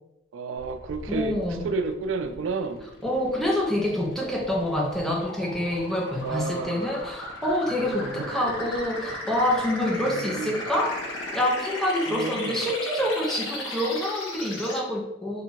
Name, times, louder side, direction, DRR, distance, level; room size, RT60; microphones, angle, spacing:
voice 1, 0.3-2.9 6.2-6.9 7.8-8.5 10.0-10.6 12.1-12.6, right 4 dB, 80° right, 9 dB, 0.3 m, -32 dB
sound 1, 0.6-14.8, left 1 dB, 80° left, 0.5 m, -37 dB
voice 2, 1.1-1.7 3.0-15.4, left 1 dB, ahead, -1 dB, 0.4 m, -27 dB
2.7 x 2.2 x 2.8 m, 0.87 s
head